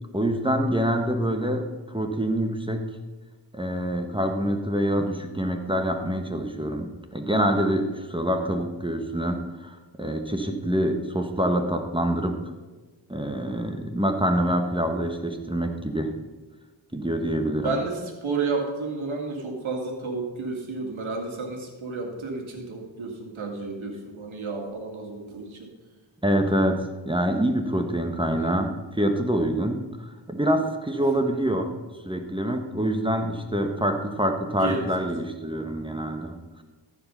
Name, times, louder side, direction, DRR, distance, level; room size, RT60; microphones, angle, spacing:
voice 1, 0.1-2.9 3.5-12.5 13.1-16.1 16.9-17.7 26.2-31.7 32.0-36.4, right 1 dB, 10° right, 4 dB, 1.2 m, -26 dB
voice 2, 17.6-25.7 27.6-27.8 28.3-28.6 34.6-34.9, right 3 dB, 75° right, 2 dB, 2.2 m, -31 dB
14.0 x 5.0 x 5.5 m, 1.3 s
cardioid pair, 55°, 47 cm